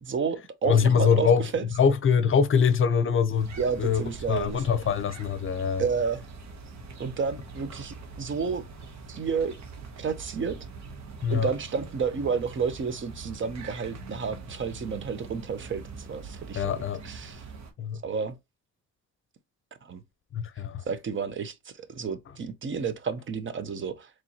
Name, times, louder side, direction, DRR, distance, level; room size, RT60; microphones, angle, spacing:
voice 1, 0.0-1.7 3.6-4.6 5.8-6.2 7.0-8.6 9.1-9.6 10.0-10.6 11.3-16.7 17.0-17.5 18.0-18.4 19.8-20.0 20.9-24.1, right 5 dB, 40° right, 0.7 m, -31 dB
voice 2, 0.6-1.4 1.8-5.8 11.2-11.5 16.6-17.0 17.8-18.0 20.3-20.8, left 6 dB, 45° left, 0.6 m, -23 dB
sound 1, 3.3-17.7, right 4 dB, 65° right, 1.1 m, -43 dB
4.3 x 3.1 x 2.8 m
cardioid pair, 90°, 30 cm